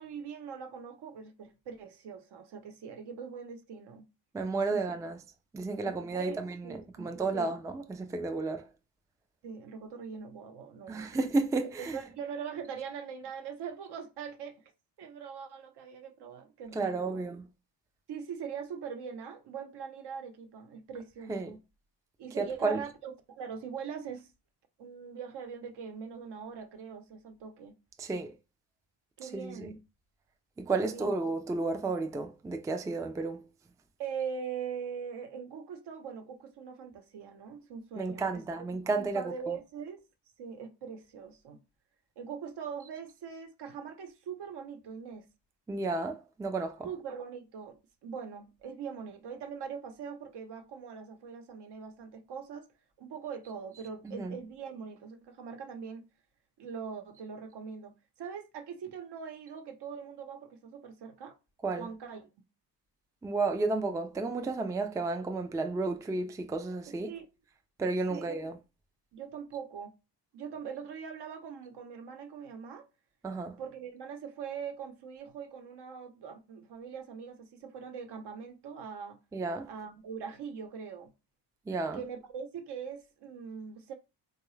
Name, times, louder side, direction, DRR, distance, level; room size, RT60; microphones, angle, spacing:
voice 1, 0.0-4.1 4.7-4.8 5.8-7.5 9.4-11.2 11.8-14.7 15.0-17.2 18.1-21.6 22.2-24.3 24.8-27.7 29.2-29.8 30.8-31.1 34.0-40.1 40.4-41.6 42.2-45.3 46.8-52.7 53.0-56.0 56.6-61.4 61.8-62.3 66.9-67.3 68.1-68.3 69.1-69.9 70.3-72.9 73.6-79.2 79.7-81.1 81.9-83.9, right 6 dB, 70° right, 0.9 m, -42 dB
voice 2, 4.3-5.2 5.5-6.6 7.0-8.7 10.9-12.0 16.7-17.5 21.3-21.5 22.4-22.8 28.0-28.3 29.3-29.7 30.6-33.4 38.0-39.5 45.7-46.9 54.0-54.4 61.6-61.9 63.2-67.1 67.8-68.6 73.2-73.6 79.3-79.7 81.7-82.0, right 3 dB, 10° right, 0.3 m, -32 dB
3.7 x 2.3 x 3.1 m
cardioid pair, 100°, 42 cm